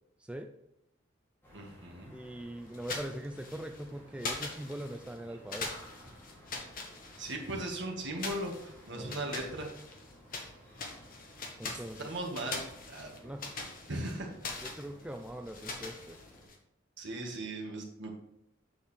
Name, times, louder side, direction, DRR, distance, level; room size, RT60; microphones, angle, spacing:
sound 1, 1.4-16.5, equal, 10° left, 2.8 m, -56 dB
voice 1, 1.5-2.1 7.2-9.7 12.0-12.6 12.9-13.1 13.9-14.3 17.0-18.1, right 1 dB, 60° right, 1 dB, 1.7 m, -38 dB
voice 2, 2.1-5.7 8.9-9.5 11.6-12.1 13.2-13.4 14.6-16.2, right 1 dB, 5° right, 4 dB, 0.4 m, -42 dB
sound 2, 2.7-3.8 4.2-5.2 5.5-7.6 8.2-10.5 10.8-16.6, left 3 dB, 45° left, 1.4 m, -42 dB
8.0 x 6.6 x 3.4 m, 0.83 s
head